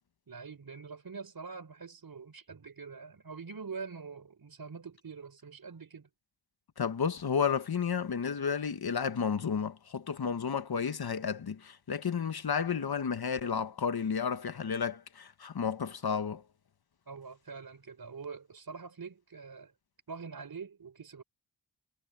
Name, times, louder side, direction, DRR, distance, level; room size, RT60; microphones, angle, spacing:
voice 1, 0.3-6.1 17.1-19.7 20.1-21.2, right 5 dB, 55° right, 4.3 m, -44 dB
voice 2, 6.8-16.4, left 6 dB, 55° left, 1.5 m, -32 dB
cardioid pair, 65°, 43 cm